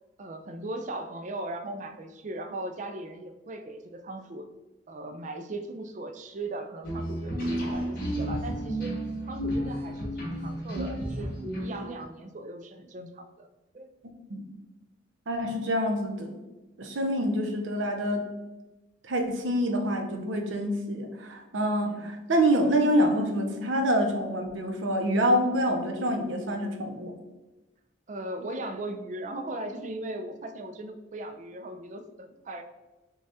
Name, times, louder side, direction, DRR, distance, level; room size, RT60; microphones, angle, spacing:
voice 1, 0.2-4.5 4.9-9.0 9.2-11.3 11.6-13.5 13.7-13.9 15.5-15.7 17.2-17.5 21.8-22.1 28.1-32.6, right 2 dB, 40° right, 6 dB, 0.4 m, -38 dB
sound 1, 6.8-12.0, equal, 50° left, 1.1 m, -32 dB
voice 2, 15.3-16.4 16.8-18.3 19.0-27.1, equal, 85° right, 4 dB, 0.7 m, -26 dB
6.3 x 2.3 x 2.7 m, 1.1 s
head